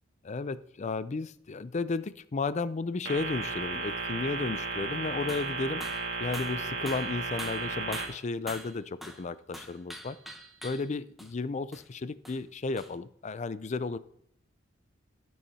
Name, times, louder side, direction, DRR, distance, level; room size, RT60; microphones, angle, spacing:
voice 1, 0.2-10.2 10.6-14.0, left 3 dB, 35° left, 15 dB, 0.4 m, -34 dB
sound 1, 3.1-8.0, right 4 dB, 60° right, 2.0 m, -34 dB
sound 2, 5.3-5.6 5.8-6.1 6.3-9.3 9.5-10.9 11.2-11.3 11.7-11.9 12.2-12.4 12.8-12.9, equal, ahead, 0.8 m, -44 dB
13.0 x 4.7 x 5.5 m, 0.67 s
head